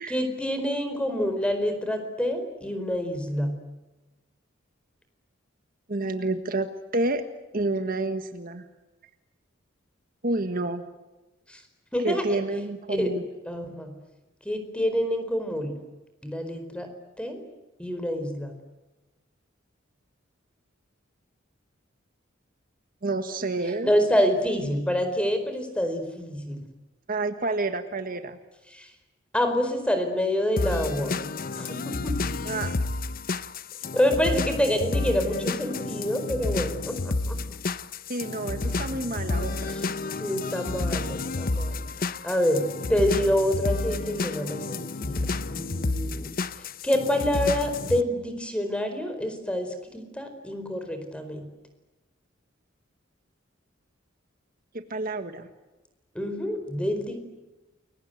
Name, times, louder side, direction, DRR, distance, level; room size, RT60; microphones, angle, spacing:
voice 1, 0.1-3.5 11.5-11.6 11.9-12.4 12.9-13.1 13.5-13.9 14.4-15.7 16.2-16.9 17.2-17.5 17.8-18.5 23.8-26.6 28.7-28.9 29.3-31.2 31.6-32.1 33.9-37.4 39.7-39.8 40.2-45.2 45.5-46.3 46.8-51.4 56.1-57.2, equal, 5° left, 7 dB, 4.5 m, -27 dB
voice 2, 5.9-6.7 6.9-7.2 7.5-8.6 10.2-10.8 12.0-13.2 23.0-23.9 27.1-28.4 32.4-32.7 34.3-34.4 38.1-39.7 54.7-55.5, right 2 dB, 50° right, 8 dB, 1.6 m, -29 dB
sound 1, 30.6-48.0, left 3 dB, 45° left, 0.9 m, -30 dB
29.5 x 23.0 x 8.1 m, 1.1 s
head